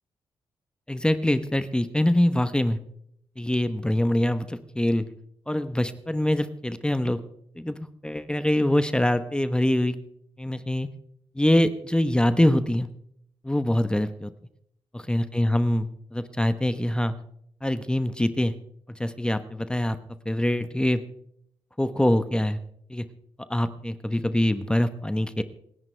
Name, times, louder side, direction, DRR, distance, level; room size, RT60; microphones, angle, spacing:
voice 1, 0.9-2.8 3.4-5.0 5.5-7.2 7.6-10.0 10.4-10.9 11.3-12.9 13.4-14.3 14.9-17.1 17.6-18.5 18.9-20.0 20.2-21.0 21.8-22.6 22.9-23.1 23.5-25.4, left 1 dB, 10° left, 11 dB, 1.0 m, -24 dB
27.5 x 10.5 x 3.4 m, 0.71 s
cardioid pair, 75°, 10 cm